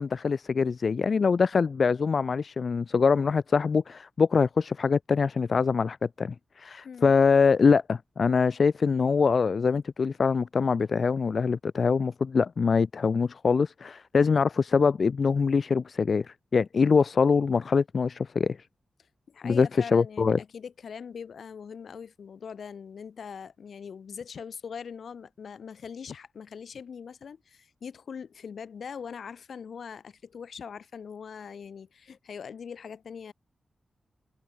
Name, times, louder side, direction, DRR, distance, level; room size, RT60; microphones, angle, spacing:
voice 1, 0.0-18.6 19.4-20.4, left 5 dB, 60° left, 0.3 m, -24 dB
voice 2, 6.8-7.1 19.3-33.3, left 6 dB, 80° left, 2.6 m, -42 dB
wide cardioid pair, 80°, 0 cm